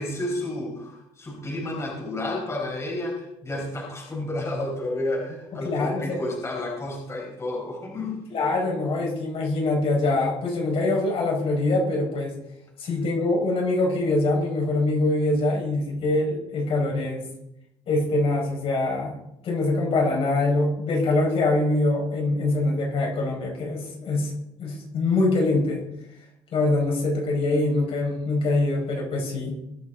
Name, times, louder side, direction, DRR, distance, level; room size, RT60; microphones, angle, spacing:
voice 1, 0.0-8.2, left 1 dB, 25° left, -2 dB, 4.9 m, -31 dB
voice 2, 5.5-6.2 8.3-12.3 12.8-17.2 17.9-19.1 19.4-24.3 24.6-25.8 26.5-29.6, left 2 dB, 50° left, -1 dB, 5.5 m, -24 dB
22.5 x 8.8 x 3.9 m, 0.82 s
cardioid pair, 115°, 12 cm